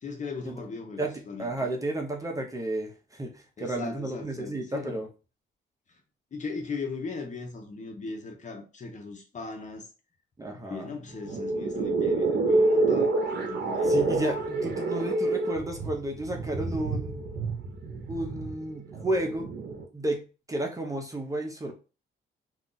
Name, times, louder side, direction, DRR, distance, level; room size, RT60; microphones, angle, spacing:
voice 1, 0.0-1.5 3.6-5.0 6.3-9.9 10.5-14.1, left 4 dB, 40° left, 0.8 m, -38 dB
voice 2, 1.0-5.1 10.4-10.9 13.8-17.3 17.9-19.5 19.9-21.7, right 1 dB, 15° right, 0.7 m, -32 dB
sound 1, 11.1-19.8, right 2 dB, 60° right, 0.7 m, -27 dB
2.5 x 2.4 x 3.8 m
cardioid pair, 90°, 20 cm